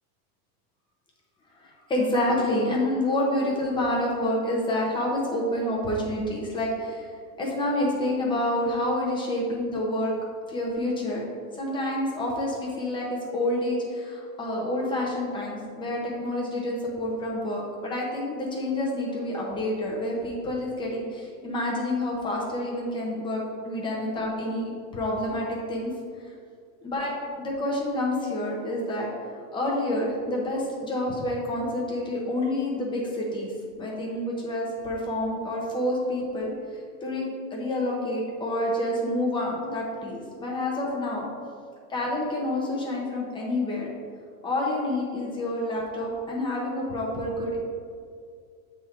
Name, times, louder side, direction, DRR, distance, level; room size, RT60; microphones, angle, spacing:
voice 1, 1.5-7.1 7.4-10.1 10.5-11.3 11.5-25.9 26.8-29.1 29.3-37.2 37.5-41.3 41.9-43.9 44.4-47.6, left 1 dB, 10° left, -3 dB, 0.8 m, -28 dB
7.8 x 3.7 x 4.4 m, 2.2 s
supercardioid pair, 160°, 46 cm